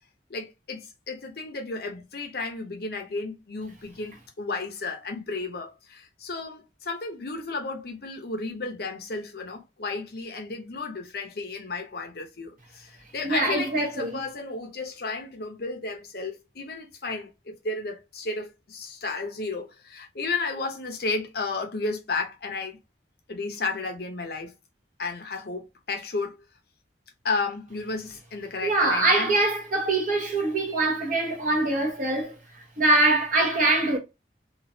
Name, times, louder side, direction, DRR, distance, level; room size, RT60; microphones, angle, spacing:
voice 1, 0.3-22.8 23.3-24.5 25.0-25.6 25.9-26.4 27.2-29.4, left 3 dB, 60° left, 0.8 m, -33 dB
voice 2, 13.2-14.1 28.6-32.4 32.8-34.0, right 2 dB, 50° right, 1.0 m, -23 dB
3.0 x 2.5 x 2.7 m
head